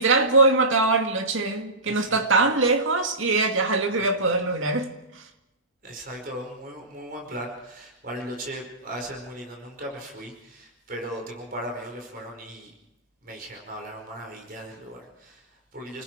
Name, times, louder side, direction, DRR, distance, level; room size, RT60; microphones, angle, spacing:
voice 1, 0.0-4.9 5.1-5.3, right 3 dB, 70° right, 5 dB, 2.2 m, -22 dB
voice 2, 1.8-2.2 5.8-12.7 13.2-16.0, equal, 45° right, 1 dB, 5.1 m, -37 dB
29.0 x 20.0 x 4.7 m, 0.89 s
head